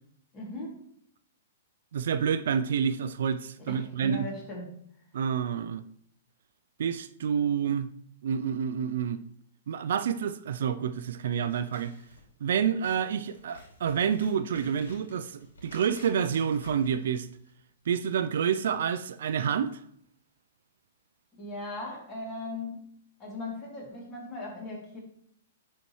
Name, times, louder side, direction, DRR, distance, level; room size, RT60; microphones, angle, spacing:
voice 1, 0.3-0.8 3.6-4.7 21.4-22.8 23.2-25.0, left 2 dB, 25° left, -3 dB, 2.7 m, -38 dB
voice 2, 1.9-4.3 5.1-5.8 6.8-7.9 8.2-9.2 9.7-11.9 12.4-17.3 17.9-19.8, right 7 dB, 70° right, 11 dB, 0.4 m, -28 dB
Scissors, 11.4-17.6, left 2 dB, 85° left, 2.5 m, -53 dB
10.0 x 4.2 x 3.1 m, 0.69 s
hypercardioid pair, 130°, 0 cm